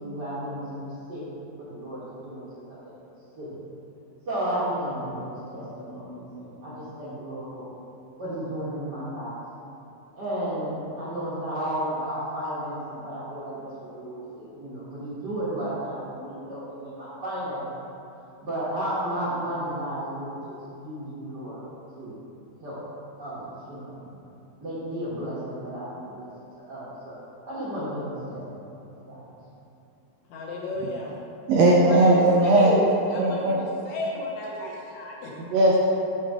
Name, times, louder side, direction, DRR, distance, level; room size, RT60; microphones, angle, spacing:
voice 1, 0.0-1.3 1.6-2.9 3.3-3.6 4.3-7.6 8.2-9.4 10.1-17.7 18.4-21.6 22.0-22.2 22.6-22.8 23.2-24.0 24.6-26.3 26.7-27.2 27.4-28.4 29.1-29.4, right 1 dB, 50° right, -10 dB, 1.4 m, -33 dB
voice 2, 30.3-31.1 31.8-35.5, left 1 dB, 75° left, -2 dB, 1.8 m, -32 dB
voice 3, 31.5-32.8 33.2-33.6 35.4-35.8, right 2 dB, 75° right, -4 dB, 1.6 m, -18 dB
9.0 x 3.3 x 4.8 m, 2.7 s
omnidirectional pair, 3.5 m